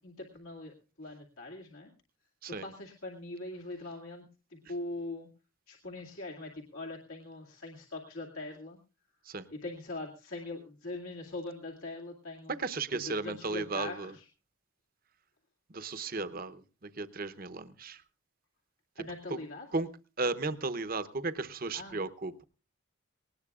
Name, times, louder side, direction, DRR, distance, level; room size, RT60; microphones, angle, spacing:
voice 1, 0.0-1.9 2.5-4.2 4.5-5.3 5.7-8.8 9.5-12.6 12.9-14.3 19.0-19.7 21.7-22.0, left 2 dB, 80° left, -1 dB, 2.3 m, -42 dB
voice 2, 12.5-14.1 15.7-18.0 19.3-19.4 19.7-19.9 20.2-22.4, right 3 dB, 40° right, 12 dB, 0.8 m, -35 dB
19.0 x 19.0 x 2.4 m, 0.33 s
head